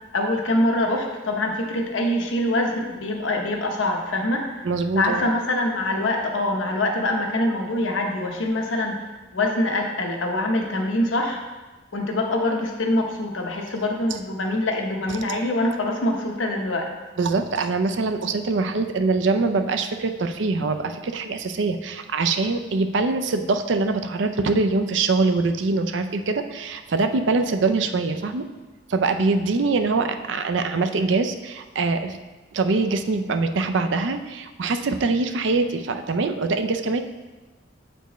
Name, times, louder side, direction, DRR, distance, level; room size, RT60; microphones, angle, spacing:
voice 1, 0.1-4.6 4.9-9.0 9.3-11.4 11.9-16.9, left 1 dB, 85° left, 2 dB, 0.9 m, -24 dB
voice 2, 4.6-5.3 15.3-15.4 17.2-28.5 28.9-32.2 32.5-37.0, right 3 dB, 70° right, 7 dB, 0.5 m, -23 dB
8.0 x 4.4 x 3.1 m, 1.2 s
head